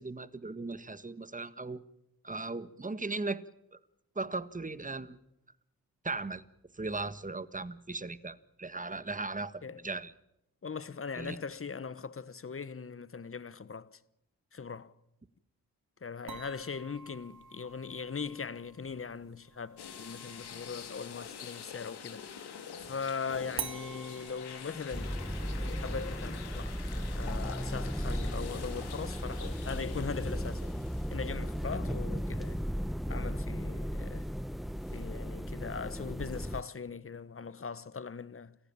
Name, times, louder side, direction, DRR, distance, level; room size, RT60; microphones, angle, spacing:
voice 1, 0.0-1.8 2.2-3.4 3.7-3.8 4.1-5.2 6.0-6.4 6.7-10.1 11.2-11.4, right 3 dB, 20° right, 1.6 m, -37 dB
voice 2, 10.6-14.0 14.5-14.9 16.0-25.2 25.6-26.8 27.1-30.8 31.1-32.6 33.1-34.3 34.9-38.6, left 5 dB, 35° left, 1.2 m, -40 dB
sound 1, 16.3-21.9 23.6-28.6, right 7 dB, 70° right, 2.8 m, -48 dB
sound 2, 19.8-32.0 32.4-32.5 34.9-35.0, left 7 dB, 85° left, 3.3 m, -47 dB
sound 3, 24.9-36.6, equal, ahead, 0.9 m, -35 dB
28.5 x 15.0 x 8.9 m
supercardioid pair, 50°, 39 cm